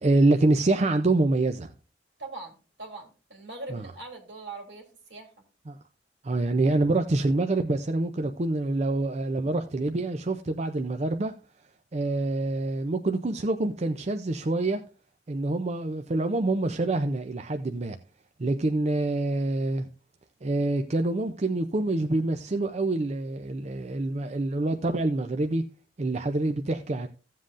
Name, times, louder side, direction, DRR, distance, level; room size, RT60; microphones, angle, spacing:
voice 1, 0.0-1.7 3.7-3.8 5.7-5.8 6.2-11.3 11.9-14.8 15.3-18.0 18.4-19.9 20.4-25.6 26.0-27.1, right 2 dB, 40° right, 0.5 m, -26 dB
voice 2, 2.2-5.3, right 2 dB, 70° right, 2.7 m, -41 dB
15.5 x 7.5 x 2.5 m
head